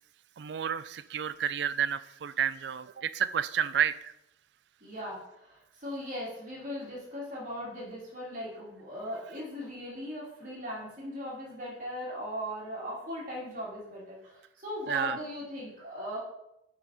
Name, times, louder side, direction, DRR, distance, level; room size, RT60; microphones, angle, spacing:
voice 1, 0.4-4.1 14.9-15.2, right 8 dB, 70° right, 14 dB, 0.4 m, -30 dB
voice 2, 4.8-5.2 5.4-14.2 14.6-16.2, equal, 45° right, -6 dB, 2.4 m, -38 dB
6.0 x 4.5 x 5.5 m, 0.83 s
head